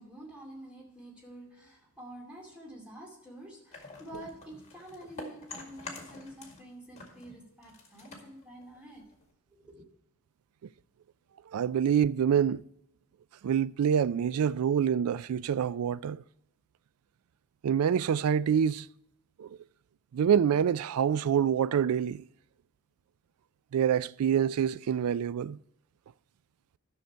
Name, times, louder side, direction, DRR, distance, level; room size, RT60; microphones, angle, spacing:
voice 1, 0.0-9.0 9.5-9.8, right 1 dB, 5° right, 2.5 m, -48 dB
sound 1, 3.7-6.7 6.9-9.3, left 3 dB, 30° left, 1.9 m, -47 dB
voice 2, 11.5-12.6 13.4-16.2 17.6-18.9 19.4-19.5 20.1-22.2 23.7-25.6, right 8 dB, 85° right, 0.3 m, -26 dB
12.0 x 6.4 x 4.5 m
head